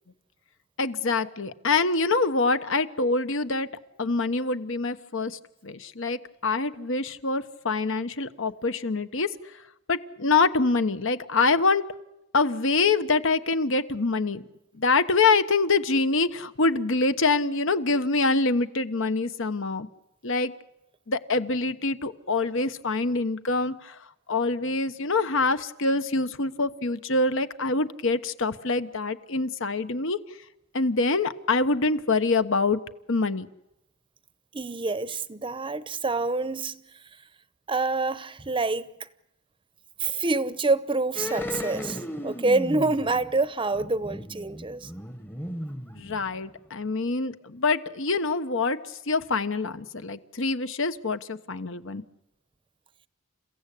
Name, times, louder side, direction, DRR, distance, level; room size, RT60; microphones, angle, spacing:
voice 1, 0.8-3.7 4.0-9.3 9.9-11.8 12.3-14.4 14.8-19.9 20.2-20.5 21.1-23.9 24.3-30.2 30.7-32.8 33.1-33.5 46.0-48.8 49.1-52.0, left 3 dB, 65° left, 1.1 m, -25 dB
voice 2, 34.5-36.8 37.7-39.1 40.0-44.9, right 3 dB, 25° right, 0.8 m, -27 dB
sound 1, 41.1-46.6 46.9-47.0, left 1 dB, 10° left, 1.1 m, -36 dB
29.5 x 16.0 x 8.4 m
head